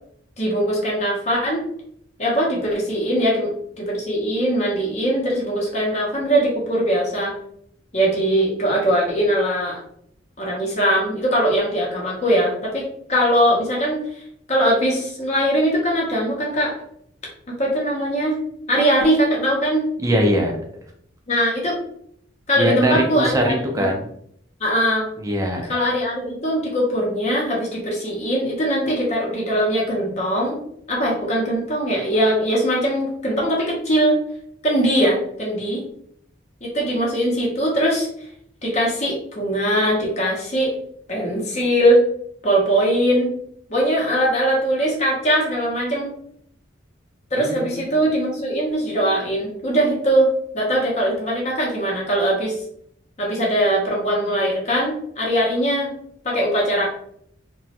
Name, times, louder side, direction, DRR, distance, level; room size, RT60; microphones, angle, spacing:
voice 1, 0.4-1.6 2.2-3.5 3.8-7.3 7.9-9.8 10.4-14.2 14.5-16.7 17.5-18.4 18.7-19.8 21.3-21.8 22.5-23.3 23.7-23.9 24.6-25.0 25.7-30.6 30.9-34.2 34.6-35.8 36.6-38.1 38.6-40.7 41.1-42.0 42.4-43.3 43.7-46.1 47.3-52.6 53.2-55.9 56.2-56.8, equal, 35° left, -3 dB, 0.7 m, -21 dB
voice 2, 20.0-20.6 22.6-24.1 25.2-25.6 47.4-47.8, equal, 15° right, 1 dB, 0.4 m, -21 dB
3.0 x 2.2 x 2.8 m, 0.67 s
head